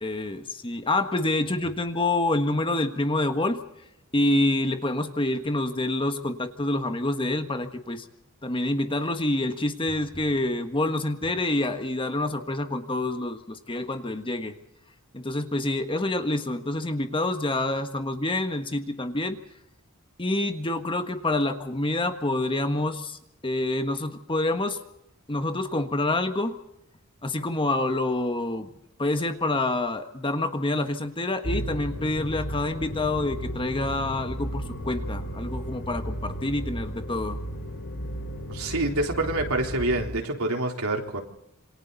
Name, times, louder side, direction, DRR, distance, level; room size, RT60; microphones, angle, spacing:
voice 1, 0.0-3.6 4.1-8.0 8.4-14.5 15.1-19.4 20.2-24.8 25.3-26.6 27.2-28.7 29.0-37.4, left 2 dB, 25° left, 7 dB, 1.5 m, -27 dB
sound 1, 31.4-40.1, equal, 55° left, 5.0 m, -34 dB
voice 2, 38.5-41.2, right 2 dB, 80° right, 2 dB, 3.9 m, -27 dB
27.5 x 24.0 x 4.1 m, 0.80 s
head